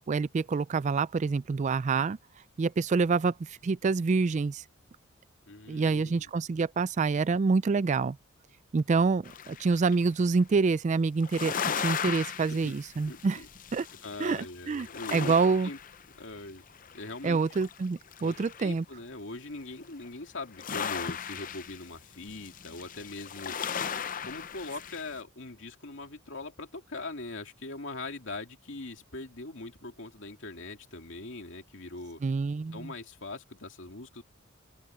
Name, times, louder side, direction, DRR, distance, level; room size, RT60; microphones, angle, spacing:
voice 1, 0.1-2.2 2.6-4.6 5.7-8.2 8.7-13.4 13.7-13.9 14.2-15.7 17.2-18.8 32.2-32.9, right 4 dB, 35° right, 0.3 m, -27 dB
voice 2, 5.5-6.3 12.5-12.7 13.1-13.5 14.0-15.3 15.6-15.8 16.2-16.6 16.9-17.6 18.2-23.6 24.3-32.2 32.7-34.2, left 2 dB, 65° left, 2.8 m, -41 dB
sound 1, 9.2-10.0 11.2-14.5 14.7-16.4 16.7-18.8 19.8-20.1 20.5-25.1, left 7 dB, 40° left, 0.6 m, -37 dB
open air
head